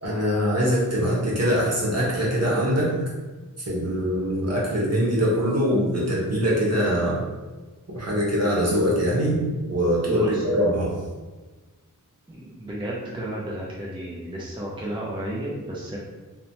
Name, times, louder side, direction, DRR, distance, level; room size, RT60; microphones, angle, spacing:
voice 1, 0.0-2.9 3.7-7.2 7.9-10.9, equal, 50° right, -5 dB, 0.9 m, -23 dB
voice 2, 10.1-10.4 12.3-16.0, right 1 dB, 15° right, -5 dB, 0.4 m, -32 dB
3.0 x 2.1 x 2.6 m, 1.3 s
wide cardioid pair, 65°, 33 cm